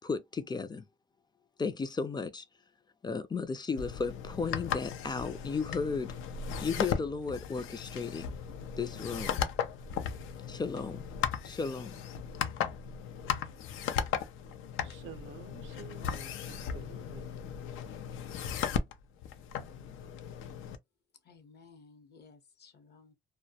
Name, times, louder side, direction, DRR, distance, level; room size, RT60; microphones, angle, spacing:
voice 1, 0.0-0.8 1.6-2.4 3.0-6.1 6.6-8.3 8.8-9.4 10.5-11.0 11.4-12.0, left 4 dB, 20° left, 0.4 m, -34 dB
sound 1, 3.8-20.8, left 8 dB, 85° left, 0.4 m, -36 dB
voice 2, 14.8-17.3, right 8 dB, 75° right, 0.5 m, -50 dB
voice 3, 21.2-23.1, left 4 dB, 55° left, 0.8 m, -57 dB
2.2 x 2.1 x 2.7 m
cardioid pair, 90°, 20 cm